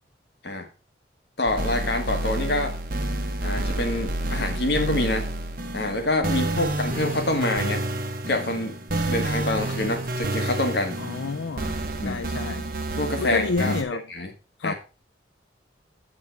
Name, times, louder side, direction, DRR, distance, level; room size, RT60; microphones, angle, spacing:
voice 1, 1.4-2.8 3.4-5.3 5.7-7.8 8.3-8.7 9.1-11.0 12.0-12.2 13.0-13.8 14.1-14.3 14.6-14.7, left 2 dB, 60° left, 2.0 m, -26 dB
sound 1, 1.5-13.8, right 1 dB, 50° right, 1.2 m, -29 dB
voice 2, 11.0-12.7 13.2-14.0 14.6-14.7, left 4 dB, 80° left, 0.5 m, -29 dB
7.9 x 7.6 x 4.6 m
head